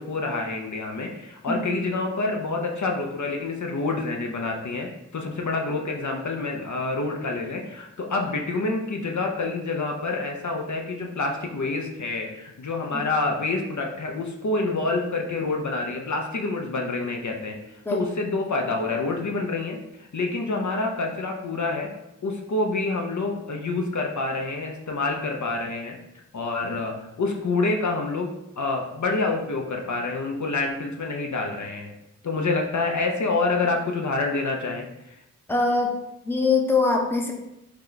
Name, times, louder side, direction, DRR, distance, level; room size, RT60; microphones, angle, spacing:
voice 1, 0.0-19.8 20.1-21.9 22.2-26.0 26.3-31.9 32.2-34.9, left 3 dB, 65° left, 2 dB, 0.5 m, -27 dB
voice 2, 35.5-35.9 36.2-37.3, left 3 dB, 5° left, 1 dB, 0.6 m, -22 dB
3.2 x 2.8 x 3.8 m, 0.87 s
wide cardioid pair, 60°, 32 cm